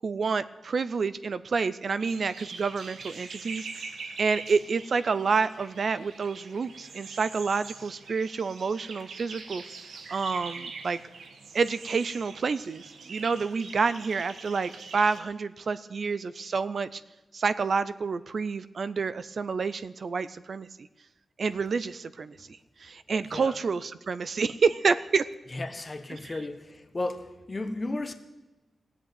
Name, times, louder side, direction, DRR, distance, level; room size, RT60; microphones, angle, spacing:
voice 1, 0.0-3.9 4.2-9.6 10.1-11.0 11.5-17.0 17.3-20.7 21.4-25.3 26.1-26.4, right 5 dB, 55° right, 0.4 m, -28 dB
sound 1, 2.0-15.2, right 4 dB, 85° right, 1.4 m, -43 dB
voice 2, 25.5-28.1, left 2 dB, 25° left, 1.1 m, -34 dB
15.5 x 8.1 x 9.3 m
wide cardioid pair, 140°, 0 cm